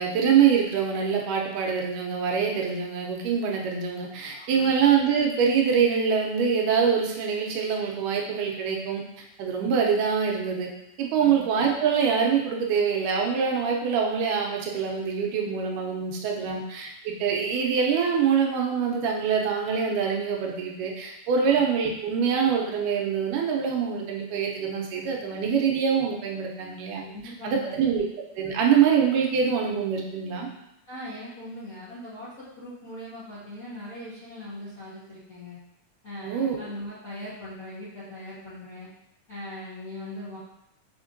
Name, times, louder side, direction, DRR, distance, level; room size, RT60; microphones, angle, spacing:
voice 1, 0.0-9.0 9.4-10.7 11.0-27.0 27.4-28.1 28.4-30.5 36.2-36.7, right 7 dB, 85° right, 0 dB, 2.3 m, -24 dB
voice 2, 4.3-4.8 11.2-11.4 16.4-16.6 21.4-21.6 27.0-27.8 30.9-35.6 36.0-38.9 39.3-40.4, left 1 dB, 50° left, -13 dB, 1.0 m, -40 dB
5.7 x 3.6 x 2.6 m, 0.86 s
omnidirectional pair, 3.6 m